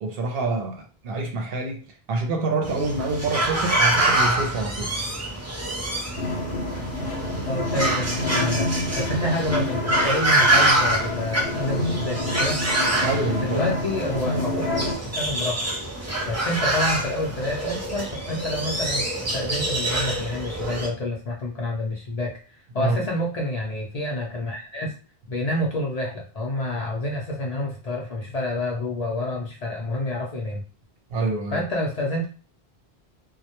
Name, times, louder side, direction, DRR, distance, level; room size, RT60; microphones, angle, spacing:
voice 1, 0.0-4.9 13.0-13.6 22.8-23.0 31.1-31.7, right 3 dB, 70° right, 3 dB, 0.7 m, -27 dB
sound 1, 2.6-20.9, right 1 dB, 20° right, 0.5 m, -25 dB
sound 2, 6.2-14.9, left 2 dB, 80° left, 0.9 m, -28 dB
voice 2, 7.5-12.6 13.3-14.7 15.0-15.7 16.2-19.0 19.3-24.9 25.3-30.6 31.5-32.3, left 1 dB, 50° left, -2 dB, 0.5 m, -28 dB
2.1 x 2.1 x 2.8 m, 0.37 s
omnidirectional pair, 1.0 m